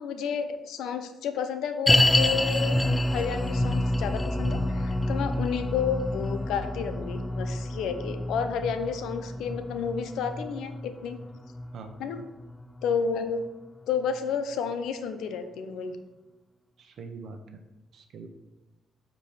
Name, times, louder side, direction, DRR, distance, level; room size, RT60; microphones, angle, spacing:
voice 1, 0.0-2.8 3.1-11.2 12.0-12.2 12.8-13.4 13.9-16.0, left 6 dB, 80° left, 8 dB, 0.6 m, -31 dB
sound 1, 1.9-13.1 13.4-13.5 14.1-14.2, left 1 dB, 15° left, 0.5 m, -28 dB
voice 2, 11.7-12.2 16.8-17.6 17.9-18.3, right 4 dB, 65° right, 7 dB, 0.8 m, -43 dB
8.2 x 3.0 x 5.0 m, 1.1 s
cardioid pair, 90°, 0 cm